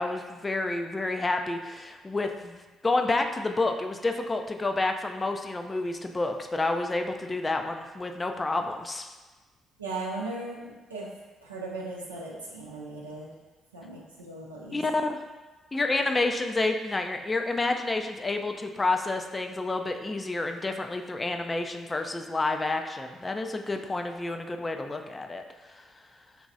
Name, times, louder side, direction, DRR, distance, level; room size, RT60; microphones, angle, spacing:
voice 1, 0.0-9.2 14.7-15.2 15.7-25.4, left 2 dB, 25° left, 5 dB, 0.4 m, -29 dB
voice 2, 9.8-10.6 10.9-11.1 11.4-13.3 13.7-14.8, right 2 dB, 85° right, -4 dB, 0.5 m, -37 dB
4.7 x 3.0 x 2.6 m, 1.2 s
figure-of-eight pair, 45°, 0 cm